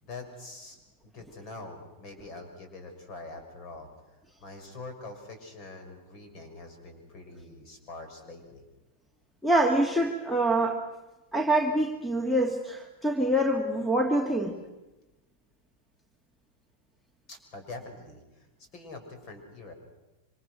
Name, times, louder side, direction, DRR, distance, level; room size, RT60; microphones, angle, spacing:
voice 1, 0.0-0.8 1.0-3.9 4.4-8.6 17.3-18.5 18.7-19.7, left 2 dB, 40° left, 5 dB, 6.1 m, -44 dB
voice 2, 9.4-10.9 11.3-14.6, right 1 dB, ahead, 4 dB, 2.0 m, -25 dB
27.0 x 25.5 x 6.4 m, 1.0 s
figure-of-eight pair, 90°, 0 cm